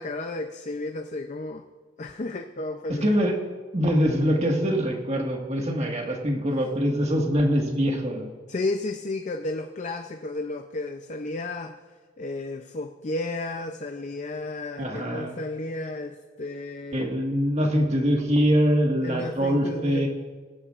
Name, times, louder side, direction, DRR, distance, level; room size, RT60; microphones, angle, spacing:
voice 1, 0.0-1.6 2.0-3.1 8.5-11.7 12.2-17.1 19.0-20.1, left 2 dB, 40° left, 5 dB, 0.5 m, -33 dB
voice 2, 2.9-3.4 3.7-8.3 14.8-15.4 16.9-20.1, equal, 35° right, 1 dB, 1.7 m, -24 dB
21.5 x 11.0 x 2.5 m, 1.4 s
head